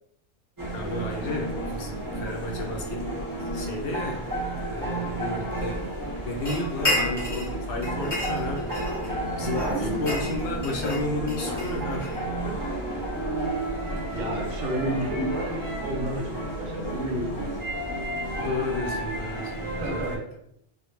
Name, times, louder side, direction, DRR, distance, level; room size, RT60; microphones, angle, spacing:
sound 1, 0.6-20.2, right 1 dB, 30° right, 0.4 m, -32 dB
voice 1, 0.7-3.0 3.5-4.2 4.6-5.8 6.2-8.7 9.4-12.6 15.0-15.2 18.4-20.2, left 2 dB, 75° left, 1 dB, 0.8 m, -32 dB
sound 2, 6.5-7.5 7.8-9.1 9.5-12.2, left 1 dB, 35° left, 0.8 m, -30 dB
voice 2, 9.5-10.1 14.1-17.5 19.8-20.2, right 1 dB, 65° right, 0 dB, 0.7 m, -31 dB
2.1 x 2.0 x 3.1 m, 0.73 s
omnidirectional pair, 1.1 m